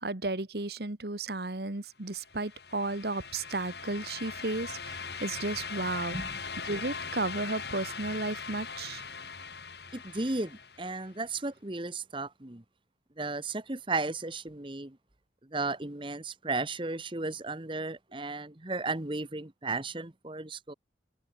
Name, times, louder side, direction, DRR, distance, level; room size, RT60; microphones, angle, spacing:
voice 1, 0.0-6.2 6.6-9.0, right 2 dB, 60° right, 1.6 m, -34 dB
sound 1, 2.2-11.1, left 5 dB, 70° left, 6.5 m, -40 dB
voice 2, 9.9-12.6 13.2-14.9 15.5-20.7, right 3 dB, 30° right, 1.3 m, -34 dB
head